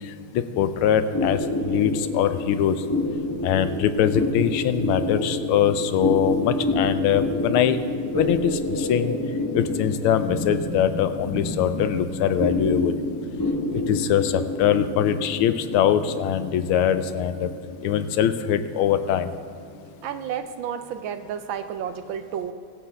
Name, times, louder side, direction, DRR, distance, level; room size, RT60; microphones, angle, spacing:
voice 1, 0.3-2.8 3.4-7.9 8.1-9.1 9.5-13.0 13.7-17.5 17.8-19.3, left 9 dB, 85° left, 11 dB, 1.5 m, -22 dB
sound 1, 1.1-19.9, left 1 dB, 20° left, 0.5 m, -29 dB
voice 2, 20.0-22.5, right 8 dB, 75° right, 9 dB, 1.3 m, -31 dB
21.5 x 7.8 x 3.4 m, 2.3 s
omnidirectional pair, 2.3 m